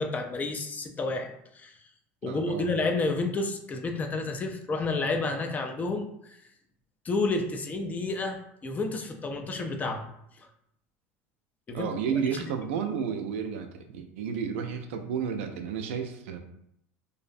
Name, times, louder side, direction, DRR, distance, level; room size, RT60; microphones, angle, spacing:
voice 1, 0.0-1.7 2.2-6.4 7.0-10.1 11.7-11.9 12.4-12.5, left 3 dB, 25° left, 4 dB, 0.3 m, -30 dB
voice 2, 2.2-2.7 11.7-16.4, right 7 dB, 85° right, 5 dB, 0.4 m, -32 dB
2.5 x 2.0 x 2.5 m, 0.74 s
supercardioid pair, 110°, 7 cm